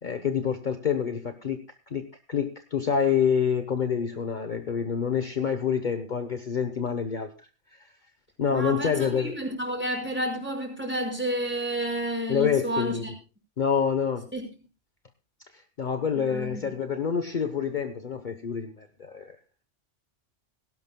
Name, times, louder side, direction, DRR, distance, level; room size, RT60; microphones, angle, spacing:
voice 1, 0.0-1.6 1.9-7.3 7.7-7.9 8.4-9.4 12.3-13.0 13.6-14.3 15.5-19.4, left 7 dB, 45° left, 1.1 m, -27 dB
voice 2, 8.5-13.1 14.3-14.5 16.2-16.6, right 1 dB, 10° right, 5.4 m, -30 dB
18.0 x 17.0 x 2.3 m
omnidirectional pair, 1.2 m